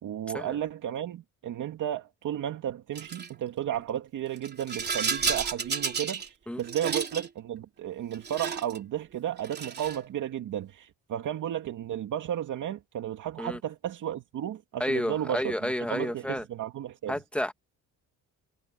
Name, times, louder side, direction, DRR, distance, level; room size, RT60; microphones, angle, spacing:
voice 1, 0.0-17.1, right 11 dB, 65° right, 2.5 m, -33 dB
Rattle, 2.9-3.3 4.4-6.3 6.6-7.3 8.1-8.8 9.4-10.0, right 5 dB, 30° right, 3.3 m, -32 dB
voice 2, 14.8-16.4 17.1-17.5, left 1 dB, 5° left, 1.8 m, -30 dB
cardioid pair, 135°, 33 cm